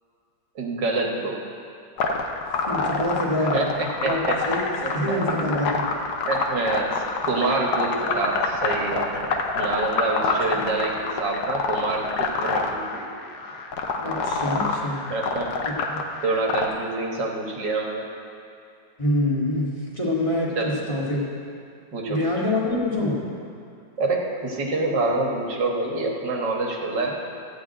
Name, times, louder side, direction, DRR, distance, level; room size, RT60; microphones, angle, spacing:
voice 1, 0.6-1.4 3.3-4.4 4.8-4.9 6.3-13.0 15.1-15.5 16.2-18.1 20.6-20.8 21.9-22.3 24.0-27.1, right 3 dB, 75° right, -1 dB, 2.0 m, -27 dB
sound 1, 2.0-16.7, left 4 dB, 70° left, 1.4 m, -26 dB
voice 2, 2.7-3.6 4.0-4.2 4.5-4.6 4.9-5.8 10.5-10.6 14.0-15.0 15.7-16.0 19.0-21.2 22.1-23.2, left 1 dB, 20° left, -6 dB, 1.7 m, -25 dB
13.5 x 4.8 x 8.9 m, 2.6 s
omnidirectional pair, 1.9 m